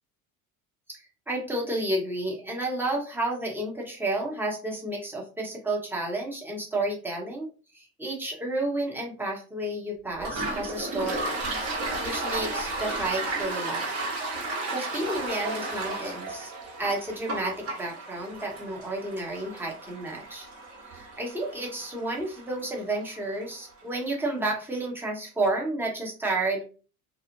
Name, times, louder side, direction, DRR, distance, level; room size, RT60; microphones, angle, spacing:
voice 1, 0.9-7.5 7.7-11.3 11.8-13.9 14.7-16.5 16.8-20.5 20.9-26.7, right 2 dB, 5° right, -2 dB, 1.0 m, -31 dB
Toilet flush, 10.2-23.5, right 2 dB, 35° right, 1.3 m, -34 dB
2.4 x 2.0 x 2.9 m, 0.37 s
hypercardioid pair, 75°, 39 cm